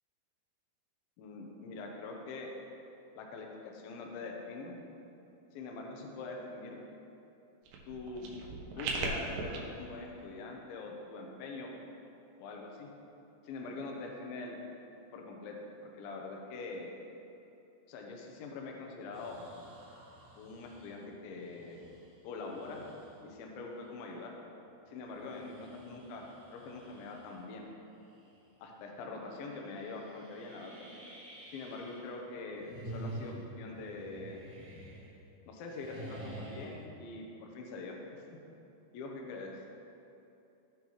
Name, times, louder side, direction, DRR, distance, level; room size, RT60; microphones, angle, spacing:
voice 1, 1.2-2.5 3.2-4.8 5.5-6.8 7.9-8.3 8.6-11.7 12.4-12.9 13.4-14.6 15.1-15.6 15.8-17.0 17.9-19.4 20.4-21.8 22.2-22.8 23.2-24.3 24.9-26.2 26.5-27.7 28.6-30.9 31.5-34.4 35.4-38.4 38.9-39.5, left 3 dB, 80° left, 1 dB, 2.1 m, -44 dB
sound 1, 7.7-9.6, right 3 dB, 90° right, 3.5 m, -38 dB
sound 2, 19.1-23.3 23.9-24.0 25.0-27.6 28.0-28.4 28.7-28.8 29.3-32.1 32.5-35.3 35.6-36.9, right 1 dB, 55° right, 2.2 m, -49 dB
16.0 x 5.6 x 3.1 m, 2.8 s
omnidirectional pair, 5.5 m